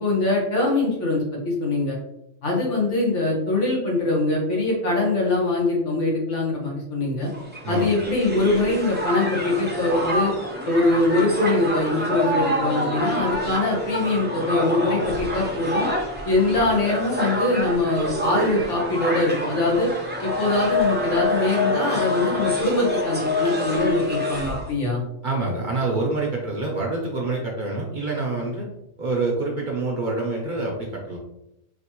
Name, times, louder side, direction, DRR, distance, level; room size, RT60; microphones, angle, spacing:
voice 1, 0.0-2.0 2.4-7.3 7.7-10.3 10.6-15.9 16.2-19.9 20.2-25.0, left 2 dB, 65° left, -3 dB, 1.5 m, -23 dB
Crowd, 7.3-24.7, left 1 dB, 10° right, 0.6 m, -27 dB
voice 2, 25.2-28.7 29.0-31.2, right 3 dB, 45° right, -2 dB, 0.8 m, -26 dB
4.1 x 2.8 x 2.9 m, 0.85 s
omnidirectional pair, 1.3 m